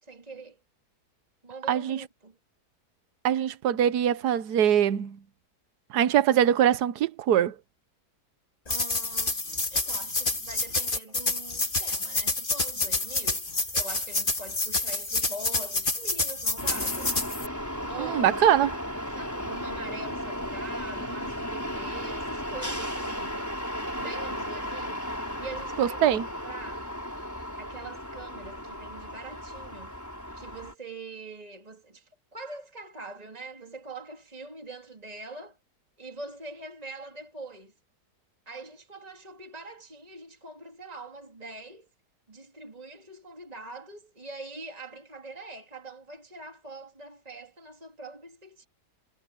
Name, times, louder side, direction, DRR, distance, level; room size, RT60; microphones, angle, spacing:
voice 1, 0.0-0.6 1.4-2.4 8.7-9.4 9.7-13.5 13.7-17.2 17.8-18.6 19.1-23.5 24.0-25.1 25.4-26.1 26.4-26.9 27.6-29.9 30.3-35.6 36.0-37.7 38.4-41.9 42.3-48.7, right 3 dB, 25° right, 3.5 m, -43 dB
voice 2, 1.7-2.0 3.2-5.2 5.9-7.5 18.0-18.7 25.8-26.3, right 10 dB, 75° right, 1.5 m, -23 dB
sound 1, 8.7-17.5, left 2 dB, 30° left, 2.8 m, -28 dB
sound 2, 16.6-30.7, equal, 10° left, 5.4 m, -35 dB
omnidirectional pair, 1.7 m